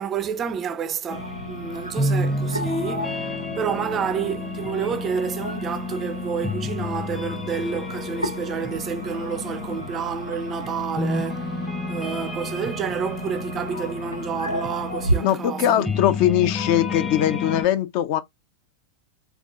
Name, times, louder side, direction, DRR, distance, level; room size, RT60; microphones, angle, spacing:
voice 1, 0.0-11.6 11.9-15.9, right 7 dB, 25° right, 0.4 m, -29 dB
sound 1, 1.1-15.2, right 1 dB, 85° left, 0.6 m, -33 dB
sound 2, 1.1-17.6, left 2 dB, 10° left, 0.8 m, -31 dB
voice 2, 15.2-18.2, left 11 dB, 45° left, 0.6 m, -21 dB
3.6 x 3.5 x 2.5 m
figure-of-eight pair, 90°, 0 cm